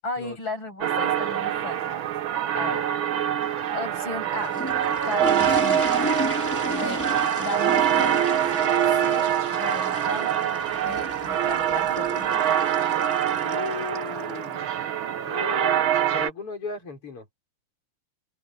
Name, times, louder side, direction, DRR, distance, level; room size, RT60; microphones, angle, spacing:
voice 1, 0.0-2.0 2.5-2.8 3.7-4.6 5.0-5.9 6.6-7.0 7.4-8.2 9.0-12.4, left 2 dB, 60° left, 8.9 m, -35 dB
sound 1, 0.8-16.3, right 10 dB, 70° right, 1.8 m, -24 dB
sound 2, 4.1-14.4, left 1 dB, 5° left, 5.2 m, -34 dB
voice 2, 13.4-14.7 15.2-17.3, left 5 dB, 90° left, 7.0 m, -36 dB
open air
omnidirectional pair, 2.4 m